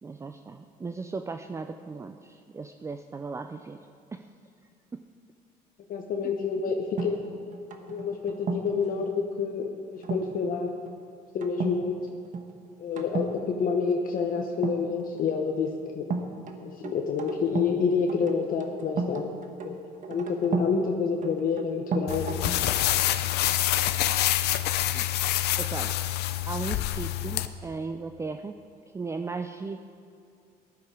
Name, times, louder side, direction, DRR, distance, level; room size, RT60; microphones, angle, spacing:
voice 1, 0.0-3.8 4.1-4.3 4.9-5.0 6.2-6.3 24.9-25.1 25.6-26.0 26.5-28.6 28.9-29.9, right 4 dB, 15° right, 7 dB, 0.4 m, -36 dB
voice 2, 5.9-7.2 7.9-10.7 11.3-12.0 12.8-16.1 16.6-19.2 19.6-19.8 20.1-22.4, left 5 dB, 55° left, 2 dB, 1.0 m, -28 dB
sound 1, 7.0-8.8 10.0-10.3 10.7-11.0 11.4-11.8 12.1-12.5 13.0-13.4 14.5-15.3 16.1-17.8 18.1-20.8 21.2-22.7, right 4 dB, 50° right, 1.3 m, -33 dB
sound 2, 22.1-27.5, left 14 dB, 75° left, 0.6 m, -26 dB
14.5 x 12.0 x 4.8 m, 2.5 s
cardioid pair, 110°, 17 cm